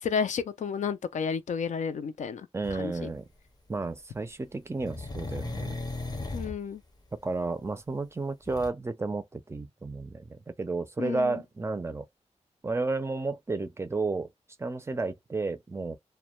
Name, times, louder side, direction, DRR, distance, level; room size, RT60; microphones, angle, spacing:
voice 1, 0.0-3.1 6.3-6.8 11.0-11.4, left 6 dB, 85° left, 0.4 m, -32 dB
voice 2, 2.5-3.3 3.7-5.8 7.1-12.1 12.6-14.3 14.6-16.0, right 3 dB, 20° right, 0.4 m, -32 dB
sound 1, 2.6-2.8 4.8-6.6 8.5-8.7, left 2 dB, 35° left, 0.5 m, -36 dB
2.1 x 2.1 x 2.9 m
wide cardioid pair, 120°, 12 cm